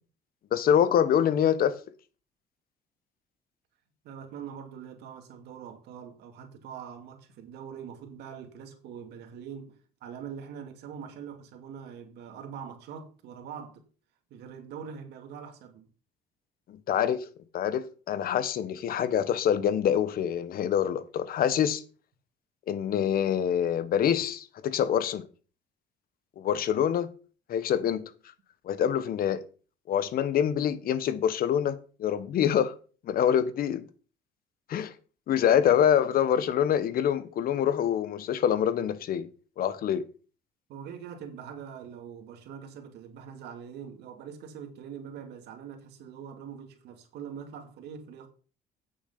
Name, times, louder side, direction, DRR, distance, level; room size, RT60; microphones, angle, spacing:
voice 1, 0.5-1.8 16.7-17.3 17.5-21.8 22.7-25.2 26.4-27.2 27.5-28.1 28.6-29.4 29.9-32.7 33.0-33.9 34.7-34.9 35.3-39.3 39.6-40.1, left 9 dB, 60° left, 1.1 m, -25 dB
voice 2, 4.0-9.8 10.0-13.8 14.3-15.9 35.4-35.5 40.7-48.3, right 7 dB, 80° right, 2.4 m, -43 dB
9.0 x 6.9 x 5.5 m
cardioid pair, 110°, 17 cm